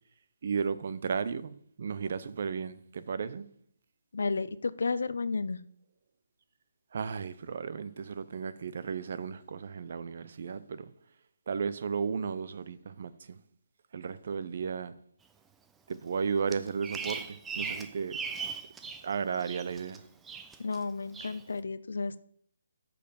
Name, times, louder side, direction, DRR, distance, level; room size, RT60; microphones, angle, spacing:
voice 1, 0.4-3.5 6.9-10.9 11.5-13.4 13.9-14.9 15.9-18.2 19.0-20.0, right 6 dB, 55° right, 0.6 m, -34 dB
voice 2, 4.1-5.6 20.6-22.2, left 4 dB, 70° left, 0.5 m, -32 dB
Bird vocalization bird call bird song, 16.5-19.1 19.3-20.0 20.2-20.8 21.1-21.4, right 5 dB, 10° right, 0.5 m, -38 dB
6.6 x 5.4 x 7.0 m
figure-of-eight pair, 155°, 0 cm